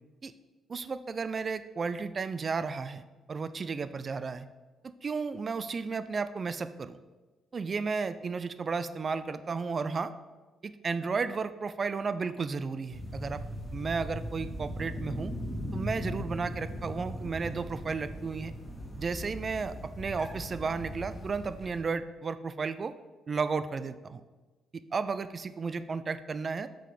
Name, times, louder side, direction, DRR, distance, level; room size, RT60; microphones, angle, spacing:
voice 1, 0.7-4.4 5.0-7.0 7.5-10.1 10.6-13.4 13.7-15.3 15.7-18.5 19.0-22.9 23.3-24.2 24.7-26.7, right 4 dB, 40° right, 12 dB, 0.3 m, -33 dB
sound 1, 12.9-21.8, equal, 10° left, 1.6 m, -39 dB
5.8 x 5.1 x 4.9 m, 1.2 s
cardioid pair, 90°, 0 cm